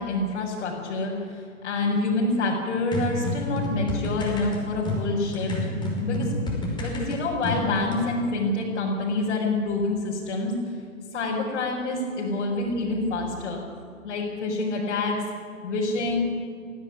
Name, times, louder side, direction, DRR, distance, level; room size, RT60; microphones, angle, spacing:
voice 1, 0.0-5.5 6.0-10.7 11.1-13.6 14.0-15.2 15.6-16.2, left 2 dB, 55° left, -4 dB, 5.4 m, -27 dB
sound 1, 2.9-8.1, left 1 dB, 10° left, 5.4 m, -29 dB
19.0 x 16.5 x 9.9 m, 2.3 s
hypercardioid pair, 130°, 42 cm